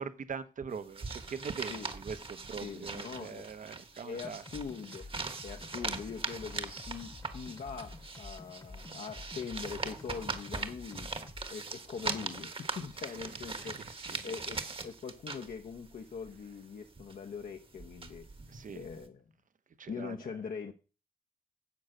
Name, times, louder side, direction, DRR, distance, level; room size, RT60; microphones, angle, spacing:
voice 1, 0.0-4.4 13.2-13.3 13.6-14.4 18.5-18.8 19.8-20.2, right 6 dB, 60° right, 1.1 m, -42 dB
sound 1, 0.7-16.6 16.9-19.1, right 4 dB, 40° right, 1.3 m, -41 dB
voice 2, 2.6-3.5 4.0-5.1 5.4-11.1 11.5-13.9 14.2-18.3 18.7-19.2 19.9-20.7, left 6 dB, 80° left, 1.0 m, -42 dB
sound 2, 4.2-11.5, left 3 dB, 25° left, 1.0 m, -49 dB
10.5 x 7.9 x 6.5 m
wide cardioid pair, 170°, 15 cm